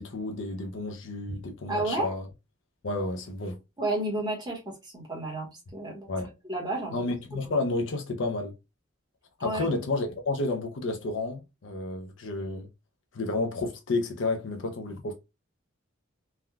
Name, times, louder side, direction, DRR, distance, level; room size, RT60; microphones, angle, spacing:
voice 1, 0.0-2.2 2.8-3.6 6.1-6.3 6.9-8.5 9.4-12.7 13.1-15.1, left 2 dB, 70° left, 0.6 m, -31 dB
voice 2, 1.7-2.2 3.8-6.1 6.4-7.0 9.4-9.7, right 2 dB, 20° right, 1.2 m, -31 dB
3.4 x 2.2 x 2.3 m
head